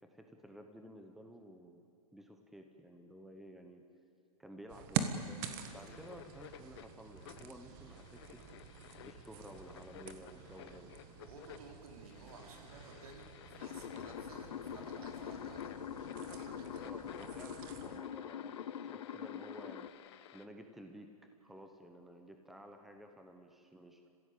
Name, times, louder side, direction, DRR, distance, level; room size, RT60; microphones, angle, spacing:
voice 1, 0.0-1.8 2.1-3.8 4.4-8.4 9.0-10.9 16.8-18.6 18.9-19.9 20.3-21.1 21.4-24.0, equal, ahead, 5 dB, 1.0 m, -53 dB
sound 1, 4.7-18.0, right 8 dB, 35° right, 1.5 m, -45 dB
sound 2, 5.3-20.5, left 11 dB, 45° left, 1.1 m, -56 dB
voice 2, 11.2-15.7 16.3-16.9, right 4 dB, 75° right, 1 dB, 4.6 m, -55 dB
sound 3, 13.6-19.9, left 9 dB, 90° left, 1.0 m, -44 dB
29.5 x 15.5 x 8.5 m, 2.4 s
hypercardioid pair, 160°, 19 cm